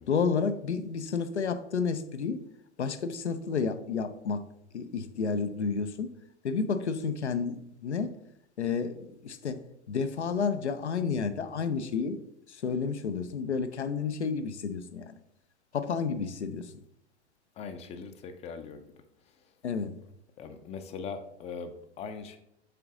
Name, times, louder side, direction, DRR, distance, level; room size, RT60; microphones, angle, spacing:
voice 1, 0.1-2.5 2.8-4.4 4.7-6.1 6.4-8.1 8.6-9.6 9.9-12.2 12.5-15.2 15.7-16.7 19.6-20.0, left 5 dB, 80° left, 10 dB, 0.6 m, -31 dB
voice 2, 17.6-18.9 19.2-19.5 20.4-22.4, left 5 dB, 20° left, 9 dB, 0.5 m, -41 dB
6.7 x 3.9 x 3.7 m, 0.76 s
figure-of-eight pair, 95°, 34 cm